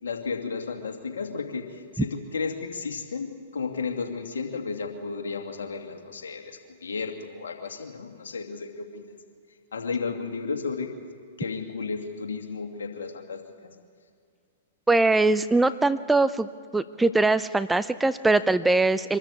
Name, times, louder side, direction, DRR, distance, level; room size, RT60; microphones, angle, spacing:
voice 1, 0.0-9.1 9.7-11.0 11.4-13.4, left 4 dB, 80° left, 3 dB, 2.5 m, -33 dB
voice 2, 14.9-16.5 16.7-19.2, right 2 dB, 5° right, 14 dB, 0.5 m, -22 dB
25.0 x 13.5 x 8.4 m, 2.2 s
hypercardioid pair, 115°, 0 cm